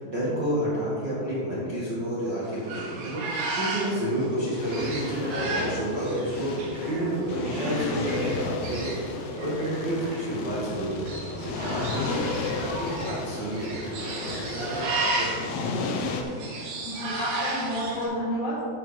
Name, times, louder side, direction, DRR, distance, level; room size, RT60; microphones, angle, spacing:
voice 1, 0.0-16.3, right 1 dB, 45° right, -9 dB, 1.4 m, -30 dB
sound 1, 2.4-18.0, right 2 dB, 75° right, 3.5 m, -34 dB
sound 2, 4.6-16.2, left 4 dB, 85° left, 2.8 m, -34 dB
voice 2, 16.8-18.6, equal, 65° left, -12 dB, 4.2 m, -30 dB
13.5 x 6.2 x 3.4 m, 2.3 s
omnidirectional pair, 4.7 m